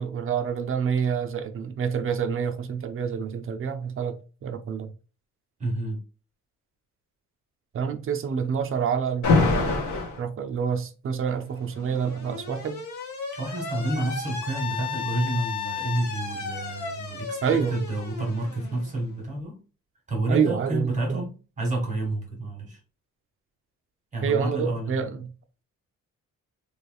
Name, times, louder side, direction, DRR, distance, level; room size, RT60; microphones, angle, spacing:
voice 1, 0.0-4.9 7.7-9.7 10.2-12.8 17.4-17.8 20.3-21.2 24.2-25.3, right 7 dB, 45° right, 0.5 m, -27 dB
voice 2, 5.6-6.0 13.3-19.6 20.1-22.8 24.1-25.0, right 1 dB, 25° right, 1.6 m, -29 dB
Alarm, 9.2-10.2 11.4-19.1, left 4 dB, 70° left, 1.3 m, -29 dB
3.2 x 3.1 x 2.2 m
cardioid pair, 150°, 31 cm